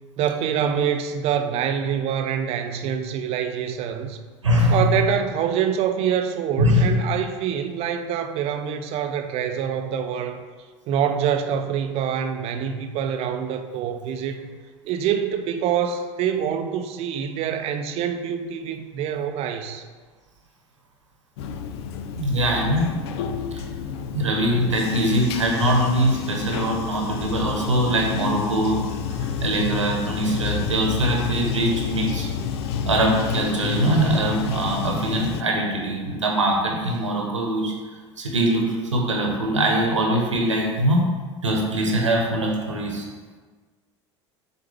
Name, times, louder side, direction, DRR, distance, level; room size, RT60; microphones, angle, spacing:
voice 1, 0.2-4.2 4.7-10.4 10.9-14.5 14.8-19.8, right 8 dB, 40° right, 8 dB, 0.6 m, -25 dB
voice 2, 4.4-4.8 6.6-6.9 22.1-22.9 23.5-23.6 24.1-28.8 29.2-32.3 32.9-37.7 38.2-41.1 41.4-43.0, right 1 dB, 80° right, -1 dB, 1.2 m, -22 dB
Bathtub (filling or washing), 21.4-35.4, left 7 dB, 60° left, 0.5 m, -29 dB
6.8 x 4.3 x 3.4 m, 1.4 s
figure-of-eight pair, 75°, 15 cm